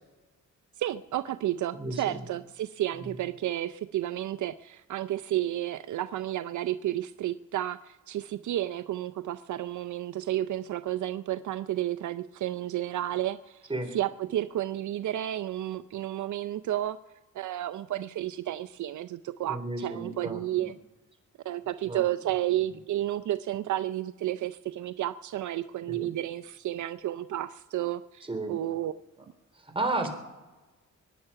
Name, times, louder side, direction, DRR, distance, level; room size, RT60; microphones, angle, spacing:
voice 1, 0.8-17.0 17.3-20.8 21.4-28.9, right 13 dB, 70° right, 12 dB, 0.5 m, -32 dB
voice 2, 1.7-2.2 3.0-3.1 13.7-13.9 19.5-20.7 21.9-22.0 25.9-26.1 28.3-28.5 29.8-30.1, right 2 dB, 20° right, 3 dB, 3.7 m, -32 dB
23.0 x 10.0 x 5.7 m, 1.2 s
cardioid pair, 70°, 30 cm